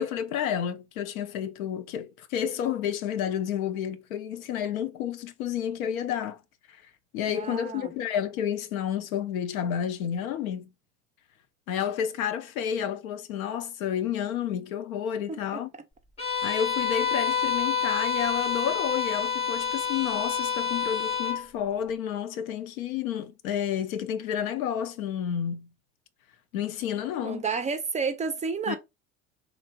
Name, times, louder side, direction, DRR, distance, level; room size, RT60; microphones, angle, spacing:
voice 1, 0.0-6.4 6.7-6.8 7.1-10.7 11.7-15.7 16.4-25.7 26.5-27.4 28.7-28.8, left 9 dB, 85° left, 0.5 m, -30 dB
voice 2, 7.3-7.9 15.3-15.6 16.2-16.4 27.2-28.8, right 5 dB, 20° right, 0.3 m, -31 dB
Bowed string instrument, 16.2-21.5, left 7 dB, 15° left, 0.8 m, -28 dB
2.8 x 2.5 x 2.2 m
hypercardioid pair, 75°, 41 cm